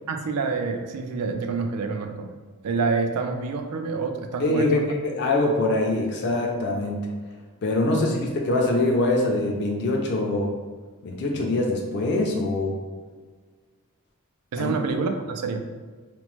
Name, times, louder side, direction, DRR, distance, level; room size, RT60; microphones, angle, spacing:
voice 1, 0.1-2.3 2.6-4.9 7.9-8.1 14.5-15.6, right 4 dB, 90° right, 5 dB, 0.4 m, -27 dB
voice 2, 4.4-7.0 7.6-10.5 11.0-12.8 14.6-14.7, left 2 dB, 50° left, 0 dB, 0.4 m, -24 dB
2.9 x 2.0 x 3.0 m, 1.4 s
head